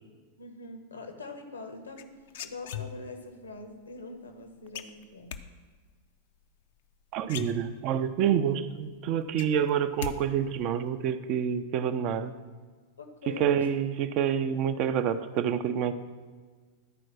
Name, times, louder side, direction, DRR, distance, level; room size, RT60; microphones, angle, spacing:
voice 1, 0.4-5.4 13.0-13.9, left 2 dB, 75° left, 7 dB, 1.0 m, -44 dB
sound 1, 2.0-3.3 4.7-5.4 6.8-6.9 7.2-8.1 8.5-8.6 8.9-10.2 10.4-10.9, left 10 dB, 55° left, 0.4 m, -39 dB
voice 2, 7.1-12.3 13.3-15.9, right 8 dB, 40° right, 10 dB, 0.4 m, -27 dB
11.0 x 4.5 x 6.0 m, 1.5 s
figure-of-eight pair, 90°, 0 cm